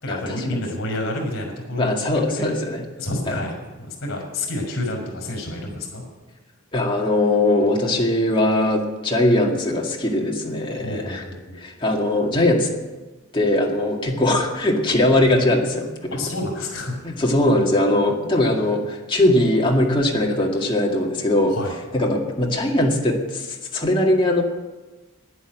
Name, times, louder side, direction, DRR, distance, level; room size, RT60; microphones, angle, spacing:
voice 1, 0.0-2.5 3.0-6.0 10.8-11.4 16.1-17.0 21.5-21.7, left 1 dB, 55° left, 0 dB, 5.8 m, -29 dB
voice 2, 1.8-2.8 3.3-3.4 6.7-11.2 11.6-12.7 13.3-15.9 17.0-21.6 21.9-24.4, left 1 dB, 25° left, -1 dB, 2.1 m, -20 dB
11.0 x 10.5 x 8.1 m, 1.2 s
head